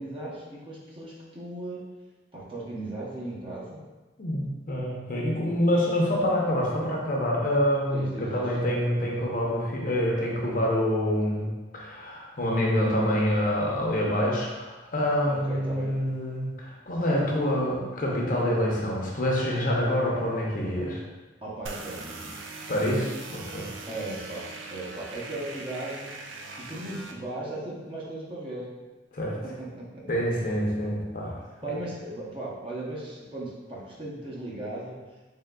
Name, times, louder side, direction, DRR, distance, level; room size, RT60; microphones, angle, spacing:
voice 1, 0.0-1.8 2.3-3.8 7.9-8.5 15.3-15.9 21.4-22.4 23.9-26.1 26.5-28.7 29.4-30.2 31.6-35.0, right 2 dB, 25° right, -5 dB, 0.7 m, -37 dB
voice 2, 4.2-21.0 22.7-23.7 29.1-29.4 30.1-31.3 31.6-31.7, equal, 45° left, -3 dB, 0.7 m, -26 dB
sound 1, 21.7-27.1, right 3 dB, 85° right, 0.4 m, -41 dB
3.7 x 3.6 x 2.2 m, 1.2 s
head